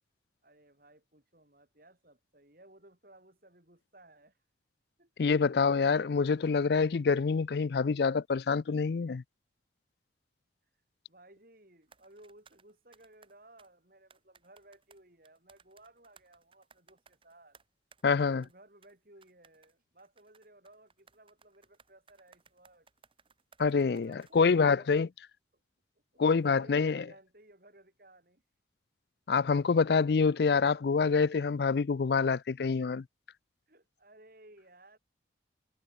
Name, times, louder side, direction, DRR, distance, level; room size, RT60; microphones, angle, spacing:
voice 1, 0.4-4.4 5.0-5.3 11.1-17.6 18.4-22.9 23.9-24.9 26.1-28.4 33.7-35.0, right 1 dB, 50° right, 4.9 m, -59 dB
voice 2, 5.2-9.2 18.0-18.4 23.6-25.1 26.2-27.0 29.3-33.0, left 5 dB, 60° left, 0.4 m, -26 dB
sound 1, 11.8-13.7 14.1-18.0 18.4-18.6 18.8-18.9 19.2-24.5 24.9-25.0, right 5 dB, 30° right, 3.2 m, -63 dB
head